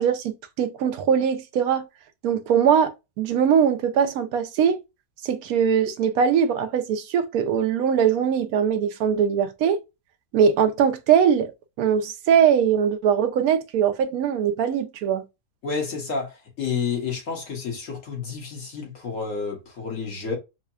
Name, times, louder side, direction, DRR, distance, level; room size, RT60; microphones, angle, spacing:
voice 1, 0.0-1.8 2.2-4.8 5.2-9.8 10.3-11.5 11.8-15.2, right 8 dB, 70° right, 1.0 m, -21 dB
voice 2, 15.6-20.4, left 5 dB, 55° left, 1.5 m, -30 dB
5.6 x 2.2 x 2.3 m
omnidirectional pair, 1.7 m